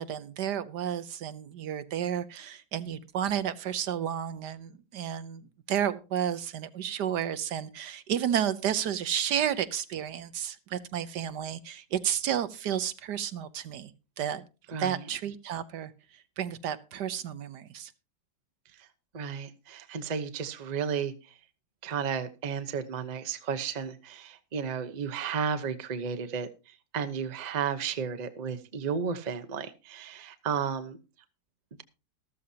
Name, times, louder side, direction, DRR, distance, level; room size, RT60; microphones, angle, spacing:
voice 1, 0.0-13.9 14.2-14.4 14.7-15.9 16.4-17.9, right 9 dB, 70° right, 12 dB, 1.3 m, -32 dB
voice 2, 14.7-15.0 19.1-21.1 21.8-26.5 26.9-31.0, right 6 dB, 30° right, 9 dB, 0.8 m, -33 dB
14.0 x 13.5 x 2.8 m, 0.31 s
omnidirectional pair, 1.9 m